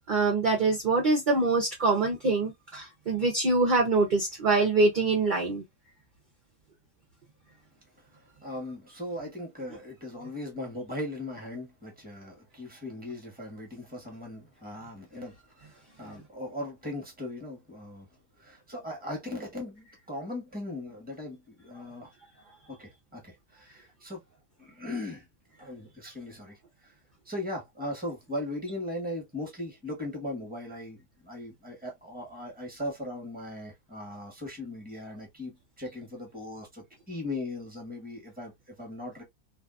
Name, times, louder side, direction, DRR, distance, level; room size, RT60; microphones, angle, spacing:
voice 1, 0.0-5.6, right 3 dB, 50° right, 0.6 m, -24 dB
voice 2, 8.4-18.1 18.4-22.1 22.7-24.2 24.6-25.2 25.6-26.9 27.2-39.2, left 1 dB, 5° right, 1.0 m, -38 dB
2.6 x 2.4 x 2.4 m
omnidirectional pair, 1.7 m